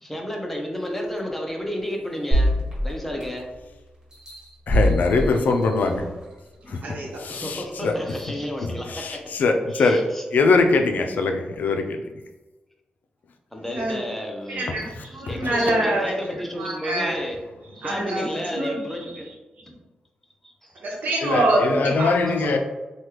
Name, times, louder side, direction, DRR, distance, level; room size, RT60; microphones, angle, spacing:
voice 1, 0.0-2.5 2.8-3.5 7.3-9.3 9.7-10.2 13.5-14.7 15.3-17.4 17.7-19.2 20.4-20.7, equal, 10° left, 1 dB, 0.6 m, -32 dB
sound 1, 2.3-3.6 4.1-6.2 6.8-6.9, equal, 25° right, 1.4 m, -24 dB
voice 2, 4.7-6.0 6.7-6.8 7.2-7.9 8.6-10.0 10.3-12.0 15.4-15.5 21.2-22.6, left 3 dB, 75° left, 4 dB, 0.4 m, -22 dB
voice 3, 6.6-7.2 13.7-14.0 14.5-16.1 16.6-17.2 17.8-19.2 19.6-19.7 20.8-22.6, right 1 dB, 75° right, -3 dB, 1.0 m, -26 dB
3.2 x 2.3 x 2.9 m, 1.1 s
cardioid pair, 85°, 3 cm